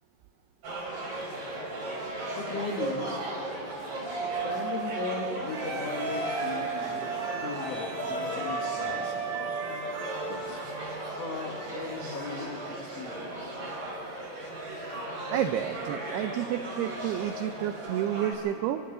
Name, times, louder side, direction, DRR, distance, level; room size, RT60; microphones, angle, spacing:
sound 1, 0.6-18.3, right 2 dB, 40° right, 6.2 m, -37 dB
voice 1, 2.3-3.2 4.3-9.3 10.3-10.7 11.2-13.5, left 4 dB, 80° left, 1 dB, 1.4 m, -38 dB
sound 2, 4.1-14.8, right 5 dB, 60° left, 7.5 m, -38 dB
sound 3, 5.5-15.1, right 2 dB, 60° right, 4.8 m, -39 dB
voice 2, 15.3-18.8, right 11 dB, 85° right, 8 dB, 2.3 m, -30 dB
29.0 x 24.0 x 3.9 m, 2.9 s
omnidirectional pair, 5.4 m